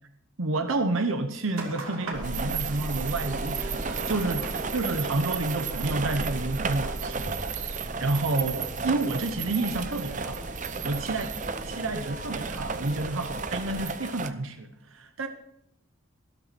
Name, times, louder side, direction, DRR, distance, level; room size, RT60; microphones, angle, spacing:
voice 1, 0.4-4.5 4.7-10.5 10.8-11.4 11.6-15.3, right 2 dB, 70° right, 7 dB, 0.9 m, -30 dB
sound 1, 1.5-7.3, right 3 dB, 85° right, 2.6 m, -41 dB
sound 2, 2.1-13.8, right 1 dB, 20° right, 1.4 m, -38 dB
sound 3, 2.2-14.3, right 5 dB, 35° right, 0.6 m, -34 dB
13.0 x 12.5 x 4.3 m, 0.75 s
head